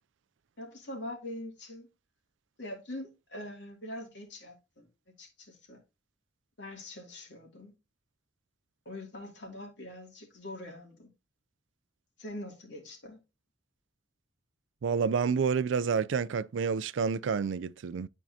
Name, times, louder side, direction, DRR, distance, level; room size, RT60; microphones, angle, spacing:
voice 1, 0.6-1.9 2.6-4.9 5.2-5.8 6.6-7.7 8.8-11.1 12.2-13.2, left 1 dB, 65° left, 2.5 m, -43 dB
voice 2, 14.8-18.1, right 6 dB, 80° right, 0.4 m, -29 dB
11.0 x 4.5 x 2.7 m
head